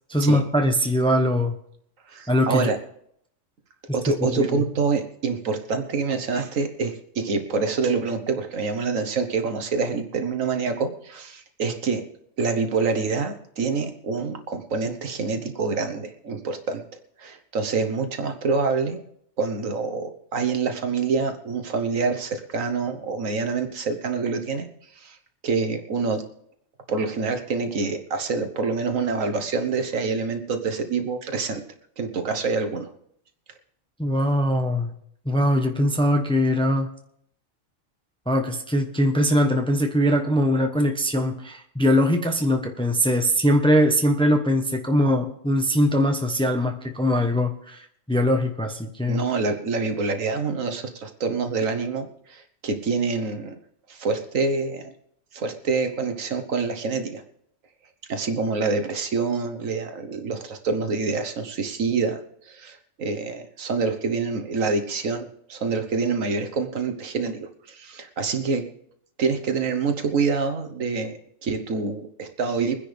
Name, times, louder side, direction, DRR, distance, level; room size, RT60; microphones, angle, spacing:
voice 1, 0.1-1.6 2.3-2.7 4.3-4.6 34.0-34.9 35.2-36.9 38.3-49.3, equal, 5° left, 4 dB, 1.0 m, -21 dB
voice 2, 2.1-2.8 3.9-12.0 12.4-16.8 17.2-19.0 19.4-24.7 25.0-25.2 25.4-26.2 26.9-31.6 32.0-32.9 49.1-53.6 53.9-54.9 55.3-57.2 58.1-62.2 62.5-68.6 69.2-72.8, right 4 dB, 75° right, 7 dB, 1.6 m, -26 dB
23.0 x 10.0 x 3.5 m, 0.71 s
omnidirectional pair, 1.4 m